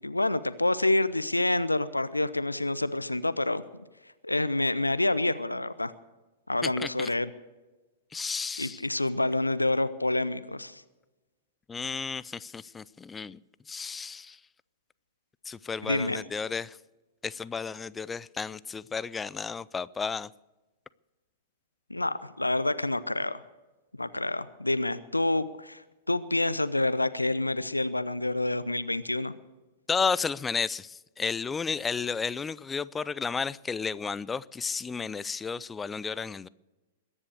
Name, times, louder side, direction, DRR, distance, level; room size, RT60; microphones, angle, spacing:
voice 1, 0.0-3.6 4.2-5.9 6.5-7.3 8.6-10.8 15.9-16.2 21.9-23.4 24.0-29.3, left 2 dB, 85° left, 14 dB, 0.7 m, -28 dB
voice 2, 6.6-7.1 8.1-8.8 11.7-13.4 13.7-14.4 15.5-16.8 17.2-20.3 29.9-36.5, left 5 dB, 15° left, 20 dB, 0.4 m, -32 dB
22.0 x 9.9 x 6.6 m, 1.1 s
figure-of-eight pair, 100°, 0 cm